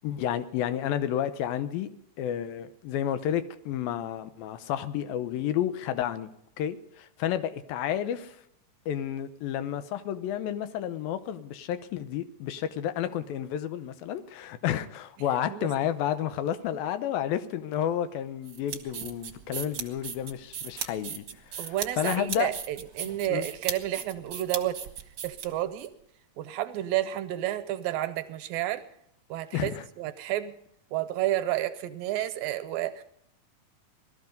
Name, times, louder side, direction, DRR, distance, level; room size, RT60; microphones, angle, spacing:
voice 1, 0.0-1.9 2.2-6.3 6.6-8.4 8.9-22.5 23.3-23.5 29.5-29.8, left 10 dB, 85° left, 11 dB, 2.7 m, -31 dB
sound 1, 18.4-25.9, right 8 dB, 55° right, 1.6 m, -37 dB
voice 2, 21.6-24.8 25.2-25.9 26.4-28.9 29.3-29.7 30.0-30.6 30.9-33.0, right 14 dB, 80° right, 10 dB, 2.6 m, -30 dB
19.5 x 13.5 x 5.3 m, 0.75 s
omnidirectional pair, 4.0 m